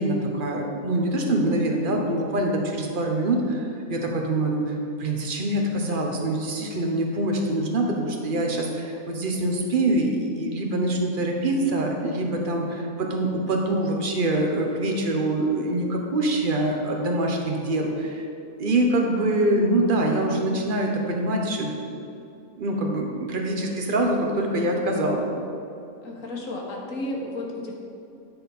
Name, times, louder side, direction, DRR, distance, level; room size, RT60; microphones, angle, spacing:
voice 1, 0.0-18.3 18.6-22.0 22.6-25.3, right 1 dB, 40° right, 1 dB, 1.0 m, -25 dB
voice 2, 26.0-27.7, left 1 dB, 65° left, -1 dB, 1.6 m, -32 dB
9.8 x 4.4 x 5.4 m, 2.6 s
omnidirectional pair, 1.5 m